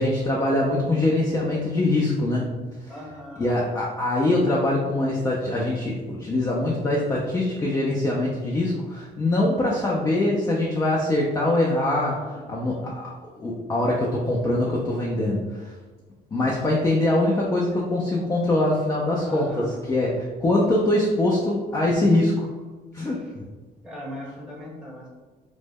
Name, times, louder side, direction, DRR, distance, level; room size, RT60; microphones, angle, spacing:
voice 1, 0.0-2.5 3.4-12.2 12.5-15.7 16.3-22.3 22.9-23.2, left 1 dB, 20° left, -3 dB, 0.4 m, -23 dB
voice 2, 2.9-3.6 11.9-12.6 19.2-19.8 21.9-22.2 23.0-23.3 23.8-25.1, equal, 5° right, -4 dB, 0.9 m, -40 dB
2.1 x 2.0 x 3.4 m, 1.3 s
cardioid pair, 110°, 17 cm